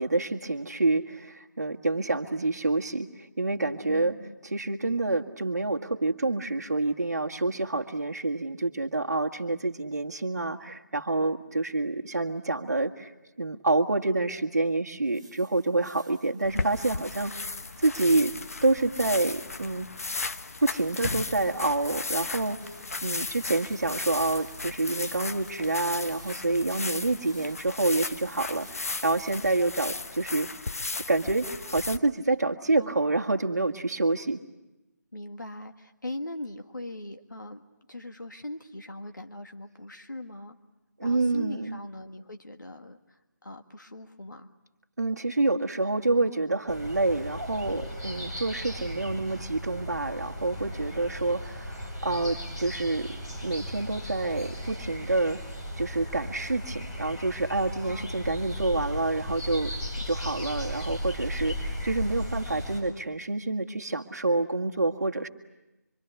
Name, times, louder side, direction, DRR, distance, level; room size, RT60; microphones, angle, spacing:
voice 1, 0.0-4.2 4.4-13.1 13.4-17.5 17.8-18.3 18.6-19.9 20.6-22.6 23.0-30.7 31.1-34.4 41.0-41.8 45.0-53.1 53.4-55.4 55.8-59.7 60.0-65.3, right 2 dB, 60° right, 5 dB, 1.8 m, -27 dB
voice 2, 3.9-4.3 32.8-33.0 35.1-37.6 37.9-40.6 41.0-44.5 57.8-58.3, left 1 dB, 80° left, 5 dB, 1.8 m, -40 dB
sound 1, 15.1-30.0, equal, 5° left, 1.8 m, -55 dB
sound 2, 16.4-32.0, left 3 dB, 50° left, 1.1 m, -36 dB
sound 3, 46.7-62.8, equal, 20° left, 5.5 m, -36 dB
26.0 x 25.5 x 8.2 m, 0.99 s
figure-of-eight pair, 155°, 10 cm